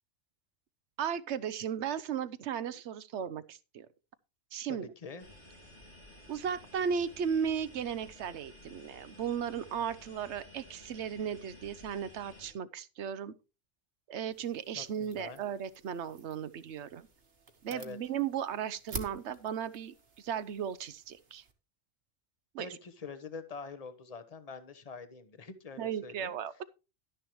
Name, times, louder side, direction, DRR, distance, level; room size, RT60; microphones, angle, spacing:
voice 1, 1.0-3.9 4.5-4.9 6.3-13.3 14.1-17.1 17.6-21.4 22.5-22.7 25.8-26.6, right 8 dB, 70° right, 1.0 m, -36 dB
voice 2, 4.7-5.3 14.7-15.4 17.7-18.0 22.6-26.3, left 4 dB, 35° left, 1.0 m, -45 dB
sound 1, 5.2-12.5, left 1 dB, 80° left, 5.3 m, -54 dB
sound 2, 14.3-21.5, right 4 dB, 55° right, 1.6 m, -49 dB
12.0 x 10.0 x 3.1 m
omnidirectional pair, 1.2 m